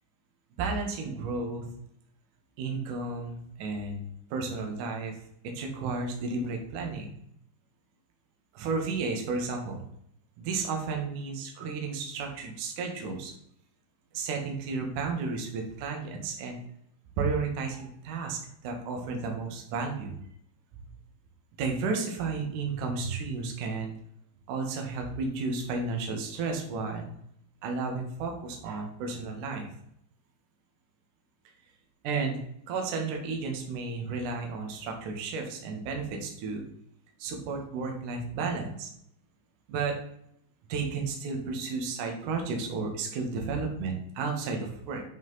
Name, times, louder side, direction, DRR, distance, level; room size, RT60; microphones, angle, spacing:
voice 1, 0.6-1.7 2.6-4.0 4.3-5.2 5.4-7.1 8.5-9.8 10.4-13.3 14.1-16.6 17.2-20.2 21.6-23.9 24.5-27.1 27.6-29.7 32.0-32.4 32.7-36.6 37.2-38.9 39.7-39.9 40.7-45.0, right 4 dB, 70° right, 2 dB, 2.0 m, -32 dB
8.3 x 5.7 x 4.0 m, 0.72 s
omnidirectional pair, 5.7 m